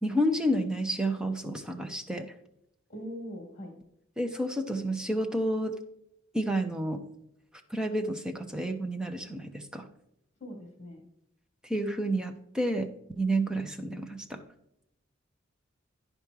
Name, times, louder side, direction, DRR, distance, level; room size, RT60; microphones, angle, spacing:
voice 1, 0.0-2.3 4.2-5.8 6.3-7.0 7.7-9.9 11.7-12.9 13.2-14.4, right 1 dB, 5° right, 4 dB, 0.8 m, -30 dB
voice 2, 2.9-3.7 10.4-11.0, equal, 35° left, 3 dB, 2.7 m, -41 dB
10.0 x 5.2 x 4.7 m, 0.77 s
head